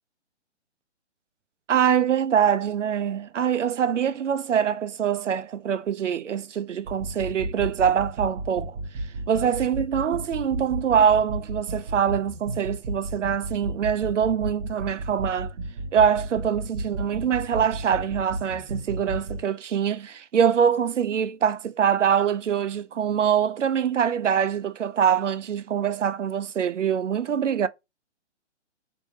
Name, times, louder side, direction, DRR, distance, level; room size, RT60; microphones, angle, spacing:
voice 1, 1.7-8.8 9.3-15.5 15.9-27.7, right 8 dB, 85° right, 0.5 m, -24 dB
sound 1, 6.9-19.5, right 2 dB, 45° right, 0.7 m, -33 dB
3.6 x 2.8 x 2.8 m
figure-of-eight pair, 130°, 36 cm